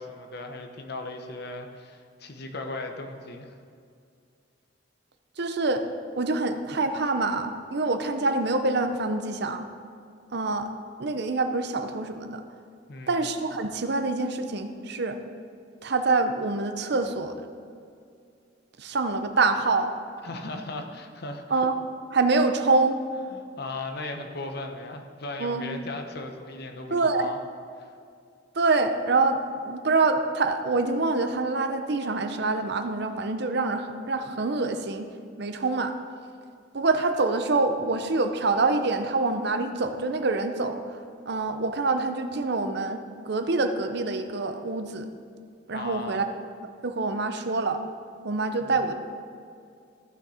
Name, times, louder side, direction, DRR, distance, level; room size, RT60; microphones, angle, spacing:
voice 1, 0.0-3.5 12.9-13.2 20.2-21.4 23.3-27.4 27.8-27.9 45.7-46.2 48.6-48.7, left 2 dB, 60° left, 5 dB, 0.9 m, -37 dB
voice 2, 5.4-5.8 6.2-9.6 10.3-10.7 11.0-12.4 13.1-15.2 15.8-17.3 18.8-19.9 21.5-21.8 22.1-23.0 25.4-25.6 26.9-27.3 28.5-35.1 35.4-35.9 36.7-40.8 41.3-45.1 45.7-46.2 46.8-47.8 48.2-48.9, right 3 dB, 60° right, 7 dB, 0.7 m, -25 dB
14.5 x 6.3 x 4.3 m, 2.3 s
head